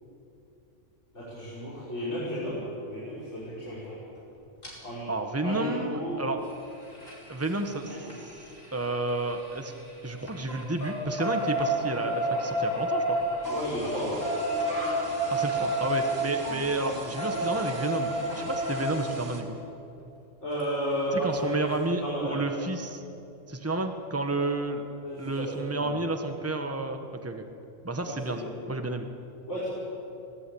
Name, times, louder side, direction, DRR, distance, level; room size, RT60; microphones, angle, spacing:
voice 1, 1.1-4.0 4.8-5.1 5.4-6.2 7.9-8.1 13.5-14.2 20.4-21.6 22.0-22.4 24.3-24.4 25.0-25.5 25.8-26.0 28.1-28.6 29.5-29.7, equal, 65° left, -10 dB, 6.5 m, -33 dB
sound 1, 4.6-4.7 6.4-9.9 10.2-18.9 20.6-20.7 21.0-21.1 21.4-21.5, right 1 dB, 80° left, 5.2 m, -31 dB
voice 2, 5.1-6.4 7.3-8.1 8.7-9.7 10.0-13.2 15.3-19.6 21.1-23.0 23.5-24.8 25.2-27.4 27.8-28.4 28.7-29.1, right 2 dB, 10° right, 6 dB, 1.3 m, -31 dB
sound 2, 13.4-19.4, right 1 dB, 70° right, 2.9 m, -41 dB
24.0 x 17.5 x 8.6 m, 2.8 s
omnidirectional pair, 1.3 m